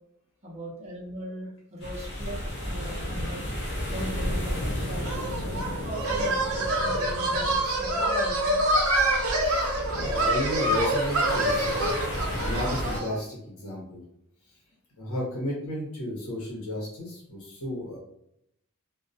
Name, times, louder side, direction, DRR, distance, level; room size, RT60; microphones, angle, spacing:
voice 1, 0.4-2.4 2.6-3.5 3.9-8.6, equal, 30° right, -3 dB, 0.6 m, -39 dB
sound 1, 1.8-13.0, equal, 50° left, 0.6 m, -33 dB
sound 2, 5.0-13.1, right 1 dB, 75° right, 0.6 m, -26 dB
voice 2, 9.3-14.0 15.0-18.0, left 1 dB, 75° left, -4 dB, 0.9 m, -33 dB
2.2 x 2.2 x 2.6 m, 0.76 s
head